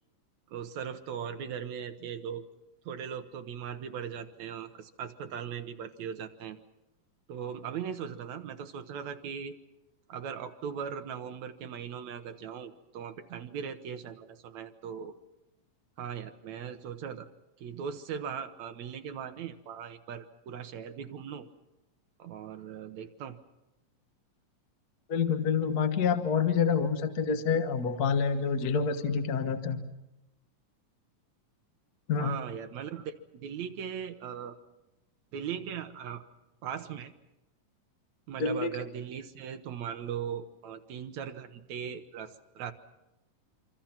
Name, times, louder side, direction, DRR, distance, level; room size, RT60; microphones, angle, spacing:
voice 1, 0.5-2.4 2.9-6.6 7.3-9.6 10.1-15.1 16.0-17.3 17.6-21.5 22.2-23.4 32.2-34.6 35.3-36.2 36.6-37.1 38.3-42.7, right 8 dB, 65° right, 8 dB, 2.1 m, -39 dB
voice 2, 25.1-29.8 32.1-32.3 38.4-38.7, left 6 dB, 60° left, 8 dB, 0.9 m, -27 dB
26.5 x 26.0 x 5.9 m, 0.91 s
omnidirectional pair, 3.9 m